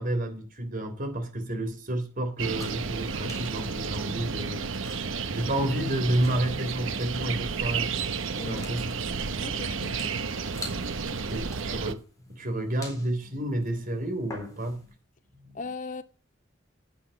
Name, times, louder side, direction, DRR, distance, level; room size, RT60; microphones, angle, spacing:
voice 1, 0.0-7.9 8.5-8.9 11.2-12.0 12.3-14.9 15.4-15.6, right 1 dB, 45° right, 3.2 m, -30 dB
sound 1, 2.4-11.9, right 5 dB, 75° right, 0.9 m, -32 dB
sound 2, 2.5-15.0, left 2 dB, 20° left, 3.9 m, -49 dB
voice 2, 9.4-10.1 15.5-16.0, left 3 dB, 40° left, 0.7 m, -38 dB
9.5 x 8.9 x 5.7 m
head